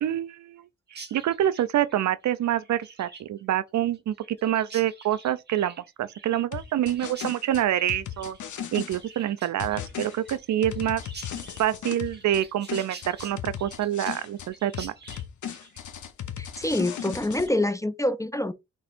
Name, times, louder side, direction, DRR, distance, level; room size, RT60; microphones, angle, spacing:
voice 1, 0.0-0.6 1.1-8.4 8.7-11.0 11.6-14.9, right 11 dB, 65° right, 0.4 m, -26 dB
Chirp tweet, 0.9-17.8, right 3 dB, 35° right, 1.1 m, -48 dB
sound 1, 6.5-9.0 9.6-12.4 12.7-14.5 14.7-17.5, left 9 dB, 70° left, 0.8 m, -36 dB
voice 2, 16.4-18.5, left 1 dB, 10° left, 0.4 m, -26 dB
4.1 x 3.6 x 2.5 m
supercardioid pair, 50°, 31 cm